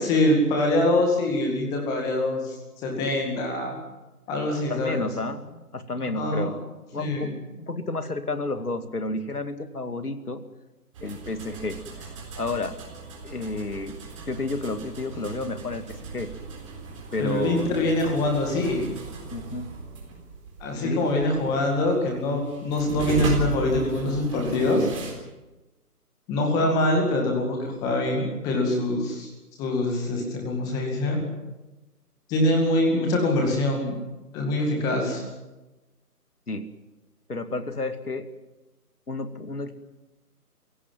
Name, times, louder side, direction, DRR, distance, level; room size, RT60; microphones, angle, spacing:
voice 1, 0.0-2.6 2.8-3.8 4.3-5.1 6.1-6.5 7.0-7.3 17.2-18.9 20.6-24.9 26.3-29.3 29.6-31.2 32.3-34.0 34.3-35.2, left 1 dB, 10° left, 1 dB, 2.1 m, -24 dB
voice 2, 4.7-6.6 6.9-7.3 7.6-10.4 11.0-11.8 12.4-12.7 13.2-14.0 14.3-16.3 17.1-17.7 19.3-19.7 20.8-21.3 36.5-36.7 37.3-38.3 39.1-39.7, left 2 dB, 70° left, 9 dB, 2.5 m, -31 dB
sound 1, 10.9-25.1, right 4 dB, 20° right, 4.0 m, -36 dB
24.5 x 17.0 x 9.1 m, 1.1 s
figure-of-eight pair, 155°, 47 cm